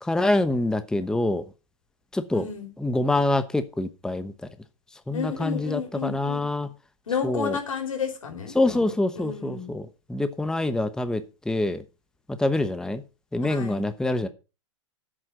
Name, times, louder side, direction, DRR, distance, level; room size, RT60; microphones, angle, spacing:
voice 1, 0.0-1.4 2.1-2.5 2.8-4.3 5.1-6.7 7.2-7.6 8.5-11.8 12.3-13.0 13.3-14.3, left 2 dB, 5° left, 11 dB, 1.0 m, -25 dB
voice 2, 2.3-2.7 5.1-6.5 7.1-8.6 9.2-9.7 13.4-13.9, left 6 dB, 90° left, 4 dB, 4.8 m, -31 dB
11.0 x 8.1 x 6.0 m, 0.31 s
hypercardioid pair, 115°, 17 cm